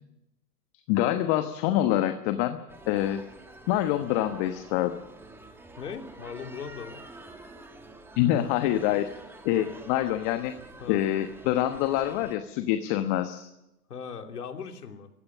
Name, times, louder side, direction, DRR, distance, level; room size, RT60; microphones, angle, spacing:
voice 1, 0.9-2.6 2.9-3.2 3.7-4.9 8.2-9.1 9.4-10.6 10.9-13.5, left 13 dB, 30° left, 9 dB, 1.2 m, -26 dB
sound 1, 2.7-12.4, right 2 dB, 5° right, 1.9 m, -47 dB
voice 2, 5.8-7.1 10.8-11.0 13.9-15.1, left 6 dB, 70° left, 5 dB, 3.0 m, -39 dB
24.5 x 16.0 x 7.3 m, 0.91 s
hypercardioid pair, 125°, 47 cm